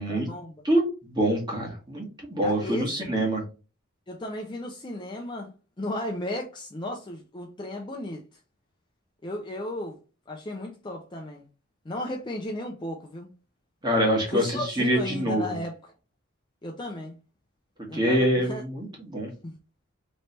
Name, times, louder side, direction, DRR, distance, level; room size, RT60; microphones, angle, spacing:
voice 1, 0.1-0.6 2.4-3.3 4.1-5.5 5.8-8.2 9.2-10.0 10.3-11.5 11.8-13.3 14.3-15.9 16.6-17.1 17.9-18.6 19.4-19.6, left 1 dB, 20° left, 0.5 m, -35 dB
voice 2, 0.6-2.0 2.3-3.4 13.8-15.6 17.9-19.3, right 1 dB, 20° right, 1.4 m, -25 dB
3.2 x 3.1 x 4.2 m
head